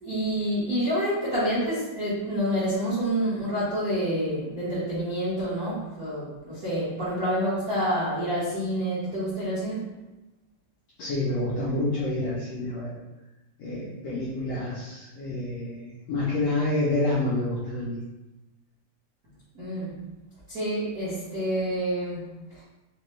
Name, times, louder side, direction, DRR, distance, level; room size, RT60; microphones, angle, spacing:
voice 1, 0.0-9.9 19.5-19.9 20.5-22.6, equal, 80° right, -12 dB, 0.8 m, -28 dB
voice 2, 11.0-13.0 13.6-18.0, left 2 dB, 80° left, -7 dB, 1.4 m, -28 dB
5.5 x 2.2 x 3.1 m, 1.0 s
omnidirectional pair, 3.9 m